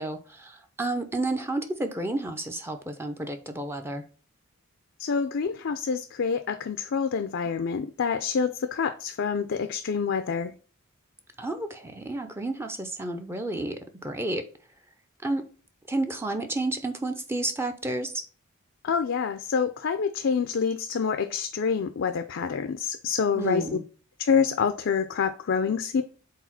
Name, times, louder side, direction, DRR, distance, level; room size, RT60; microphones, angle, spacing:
voice 1, 0.0-4.0 11.4-14.5 15.2-15.5 15.9-18.3 23.3-23.8, right 2 dB, 10° right, 0.5 m, -31 dB
voice 2, 5.0-10.5 18.8-23.6 24.2-26.0, left 6 dB, 55° left, 0.4 m, -27 dB
4.7 x 3.9 x 5.7 m
head